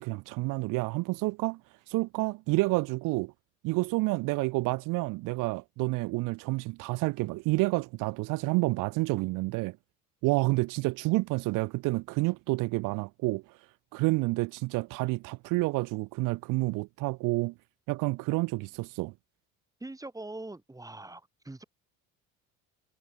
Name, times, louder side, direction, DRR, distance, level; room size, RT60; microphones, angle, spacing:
voice 1, 0.0-1.6 1.9-3.3 3.6-9.8 10.2-13.4 13.9-17.5 17.9-19.1, right 23 dB, 85° right, 1.7 m, -29 dB
voice 2, 19.8-21.6, right 2 dB, 10° right, 2.8 m, -42 dB
cardioid pair, 100°, 32 cm